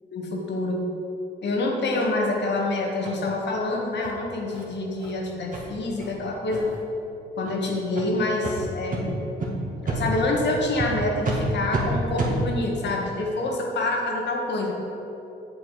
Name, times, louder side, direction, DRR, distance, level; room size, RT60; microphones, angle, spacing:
voice 1, 0.1-0.9 1.4-6.7 7.4-9.2 9.8-14.7, left 2 dB, 60° left, 0 dB, 1.6 m, -26 dB
sound 1, 2.0-2.1 2.5-2.6 3.0-3.1 3.5-3.6 4.0-4.1 4.5-4.6 5.0-5.1 5.5-5.6 6.0-6.1 6.5-6.8 7.4-7.5 7.9-8.1 8.4-8.5 8.9-9.0 9.4-9.5 9.8-10.0 10.3-10.4 10.8-10.9 11.2-11.4 11.7-11.8 12.1-12.3, right 3 dB, 45° right, 2.0 m, -30 dB
7.9 x 7.5 x 4.7 m, 3.0 s
cardioid pair, 90°, 20 cm